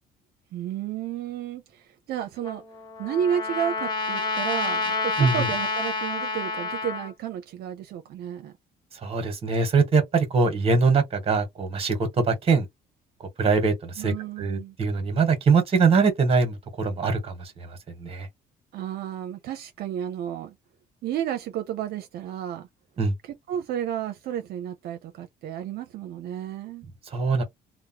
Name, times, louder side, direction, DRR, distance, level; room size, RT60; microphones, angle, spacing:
voice 1, 0.5-2.6 3.0-8.5 14.0-14.7 18.7-20.5 21.0-22.7 23.2-26.9, right 10 dB, 70° right, 0.6 m, -32 dB
Trumpet, 2.4-7.1, left 3 dB, 25° left, 1.0 m, -28 dB
voice 2, 9.0-12.7 13.4-18.3 23.0-23.1 27.1-27.4, right 4 dB, 35° right, 1.2 m, -23 dB
3.0 x 2.1 x 2.8 m
cardioid pair, 110°, 17 cm